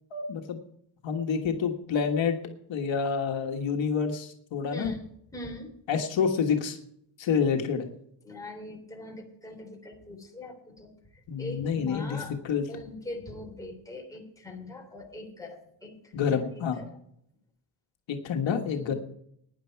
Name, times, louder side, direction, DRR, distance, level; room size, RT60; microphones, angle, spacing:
voice 1, 0.1-0.6 1.0-2.4 2.7-5.0 5.9-6.8 7.2-7.9 11.3-12.7 16.1-16.8 18.1-18.9, left 6 dB, 75° left, 3 dB, 1.6 m, -28 dB
voice 2, 4.7-5.0 5.3-5.7 8.2-10.9 11.4-12.4 12.7-16.6 18.7-19.0, left 2 dB, 5° left, 0 dB, 3.4 m, -42 dB
16.5 x 10.0 x 4.6 m, 0.71 s
wide cardioid pair, 165°, 46 cm